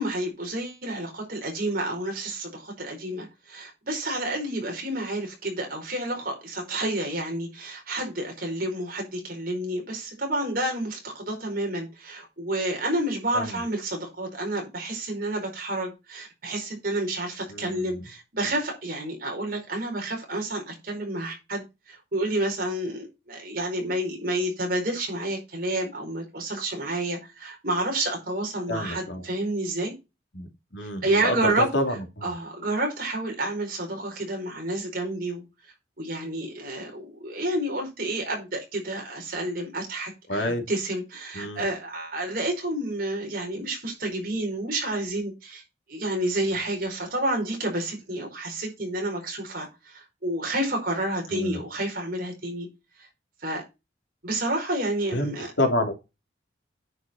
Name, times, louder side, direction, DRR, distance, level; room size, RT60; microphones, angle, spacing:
voice 1, 0.0-29.9 31.0-31.7 32.2-35.4 36.0-45.6 45.9-52.7 53.0-53.1 53.4-53.6 54.2-55.5, right 1 dB, 50° right, 4.7 m, -30 dB
voice 2, 17.5-18.0 28.7-29.2 30.3-31.4 31.7-32.3 40.3-40.6 41.3-41.6 51.3-51.6 55.1-55.3 55.6-55.9, left 1 dB, 75° left, 3.1 m, -28 dB
9.7 x 6.2 x 4.4 m
head